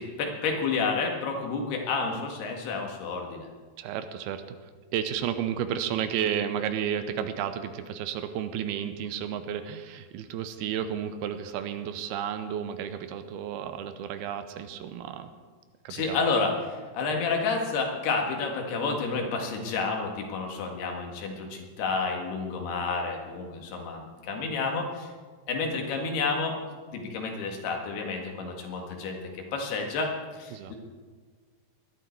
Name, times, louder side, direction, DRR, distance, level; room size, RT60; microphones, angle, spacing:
voice 1, 0.0-3.5 15.9-25.1 25.5-26.6 26.9-30.7, left 4 dB, 80° left, 2 dB, 3.9 m, -30 dB
voice 2, 3.8-4.4 4.9-15.3 15.8-16.2 30.5-30.7, right 9 dB, 80° right, 9 dB, 2.7 m, -32 dB
19.0 x 12.5 x 4.6 m, 1.5 s
omnidirectional pair, 4.6 m